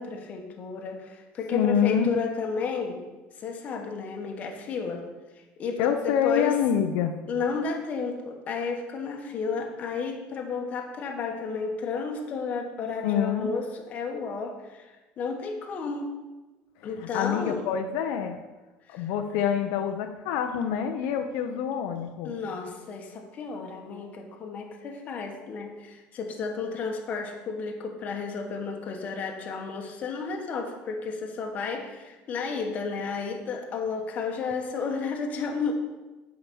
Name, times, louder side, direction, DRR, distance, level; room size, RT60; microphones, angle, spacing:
voice 1, 0.0-3.0 3.4-5.1 5.6-6.6 7.3-16.1 16.8-17.7 18.9-19.1 22.2-35.7, left 5 dB, 30° left, 3 dB, 1.3 m, -32 dB
voice 2, 1.5-2.2 5.8-7.1 13.0-13.5 16.8-18.4 18.9-22.4, left 8 dB, 75° left, 6 dB, 0.7 m, -26 dB
9.1 x 5.1 x 6.9 m, 1.2 s
cardioid pair, 170°, 5 cm